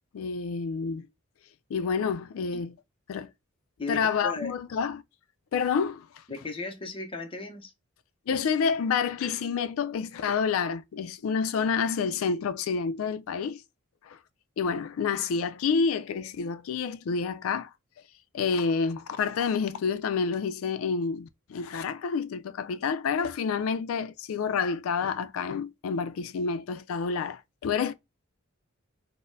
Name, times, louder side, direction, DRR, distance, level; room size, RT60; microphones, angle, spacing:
voice 1, 0.1-1.1 1.7-2.8 3.1-3.3 3.9-5.0 5.5-6.1 8.3-13.6 14.0-14.2 14.6-17.7 18.3-27.9, left 5 dB, 75° left, 0.3 m, -28 dB
voice 2, 3.8-4.5 6.3-7.7, left 3 dB, 25° left, 0.6 m, -36 dB
4.0 x 2.1 x 2.5 m
head